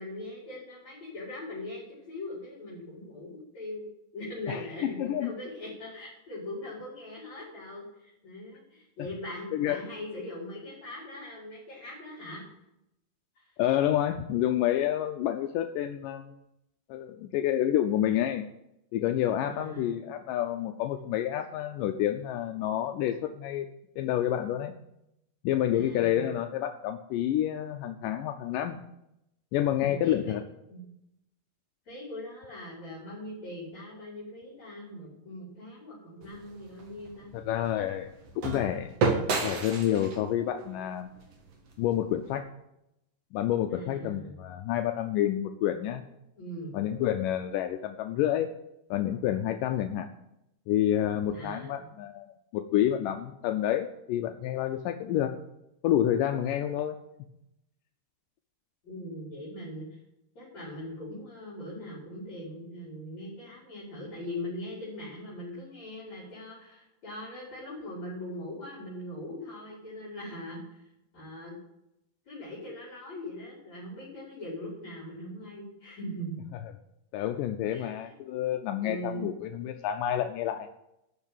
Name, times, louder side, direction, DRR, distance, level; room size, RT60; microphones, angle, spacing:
voice 1, 0.0-3.9 4.1-12.4 13.4-13.5 19.4-20.0 25.7-26.3 29.8-30.3 30.7-30.8 31.9-37.3 43.7-44.4 46.4-46.8 51.3-51.9 58.8-60.0 60.4-70.8 71.1-71.6 72.3-76.4 77.7-78.1 78.8-79.4, left 1 dB, 45° left, -7 dB, 5.4 m, -41 dB
voice 2, 4.5-5.3 9.5-9.9 13.6-16.4 16.9-18.5 18.9-23.7 24.0-24.7 25.4-28.8 29.5-30.4 37.3-38.1 38.4-38.9 39.4-41.1 41.8-42.5 43.3-46.0 46.7-48.5 48.9-50.1 50.7-55.3 55.8-57.0 77.1-80.7, left 11 dB, 85° left, 7 dB, 1.9 m, -29 dB
sound 1, 36.2-42.3, right 4 dB, 50° right, 2.3 m, -33 dB
12.0 x 6.5 x 9.0 m, 0.83 s
omnidirectional pair, 4.6 m